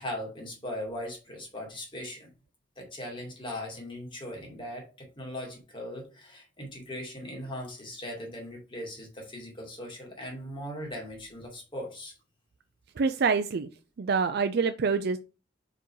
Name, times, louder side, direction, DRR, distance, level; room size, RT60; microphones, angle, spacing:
voice 1, 0.0-2.3 2.8-12.1, left 1 dB, 30° left, 0 dB, 2.4 m, -39 dB
voice 2, 13.0-13.7 14.0-15.2, right 5 dB, 60° right, 9 dB, 0.4 m, -26 dB
5.3 x 4.6 x 4.7 m, 0.33 s
head